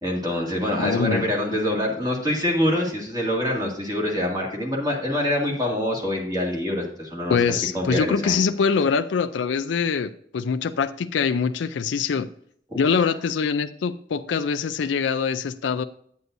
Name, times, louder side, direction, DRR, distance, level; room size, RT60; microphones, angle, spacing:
voice 1, 0.0-7.4 7.7-8.4, left 1 dB, 20° right, -2 dB, 2.1 m, -25 dB
voice 2, 0.8-1.3 7.3-12.3 12.8-15.8, left 5 dB, 85° left, 8 dB, 0.4 m, -24 dB
9.4 x 9.2 x 2.6 m, 0.64 s
head